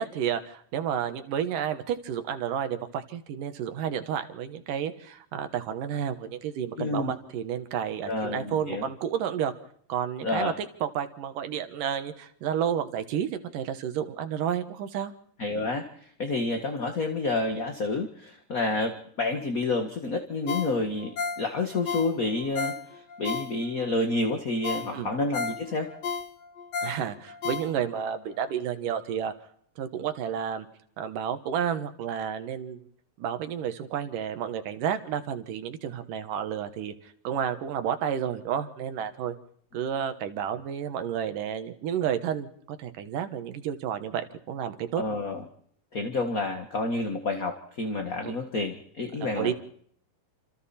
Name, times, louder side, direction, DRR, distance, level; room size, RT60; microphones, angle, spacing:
voice 1, 0.0-9.5 9.9-15.1 24.9-25.1 26.8-29.3 29.8-30.7 31.0-32.9 33.2-39.3 39.7-45.0 49.2-49.5, right 9 dB, 75° right, 9 dB, 2.9 m, -31 dB
voice 2, 6.8-7.1 8.0-8.9 10.2-10.5 15.4-25.9 45.0-45.4 45.9-49.5, left 3 dB, 35° left, 5 dB, 1.5 m, -29 dB
Ringtone, 20.5-23.9 24.3-24.4 24.6-28.1 28.5-28.6, left 5 dB, 55° left, 2.2 m, -34 dB
28.0 x 27.5 x 4.3 m, 0.63 s
omnidirectional pair, 3.9 m